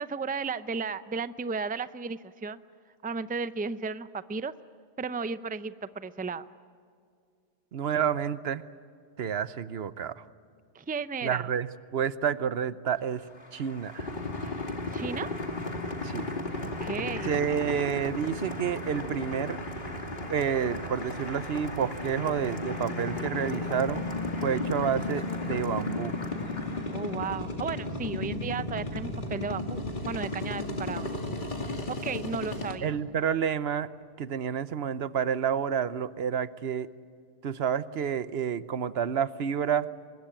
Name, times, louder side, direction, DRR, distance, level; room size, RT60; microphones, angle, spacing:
voice 1, 0.0-2.6 3.0-4.5 5.0-6.4 10.7-11.5 14.9-15.3 16.8-17.4 26.9-31.1 31.9-32.9, right 5 dB, 10° right, 13 dB, 0.5 m, -34 dB
voice 2, 7.7-8.6 9.2-10.2 11.2-13.2 13.5-14.1 16.0-16.3 17.2-19.6 20.3-24.0 24.4-26.1 32.8-33.9 34.2-36.9 37.4-39.9, right 8 dB, 80° right, 15 dB, 1.1 m, -29 dB
Applause, 12.9-27.3, left 2 dB, 70° left, 2.9 m, -43 dB
sound 1, 14.0-32.7, left 2 dB, 50° left, 2.4 m, -34 dB
24.5 x 21.0 x 9.0 m, 2.3 s
omnidirectional pair, 1.0 m